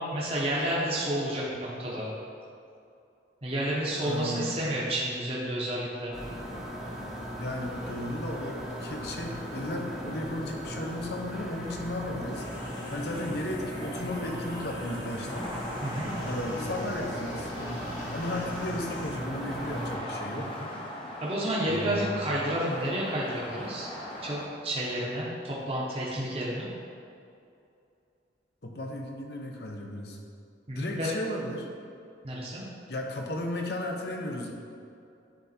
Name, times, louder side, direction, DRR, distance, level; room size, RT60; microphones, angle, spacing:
voice 1, 0.0-2.1 3.4-6.1 15.8-16.1 20.4-20.7 21.2-23.9 24.2-26.6 30.7-31.1 32.2-32.6, right 1 dB, 30° right, -6 dB, 1.1 m, -30 dB
voice 2, 4.0-4.6 7.4-12.4 12.9-15.5 16.2-17.5 18.1-20.5 21.6-22.3 28.6-30.2 30.7-31.7 32.9-34.5, left 1 dB, 60° left, 1 dB, 0.9 m, -35 dB
sound 1, 6.1-19.9, equal, 5° right, 0.9 m, -38 dB
sound 2, 12.3-19.1, left 1 dB, 85° left, 1.4 m, -42 dB
sound 3, 15.3-24.5, left 1 dB, 30° left, 0.9 m, -40 dB
10.5 x 3.6 x 4.4 m, 2.5 s
head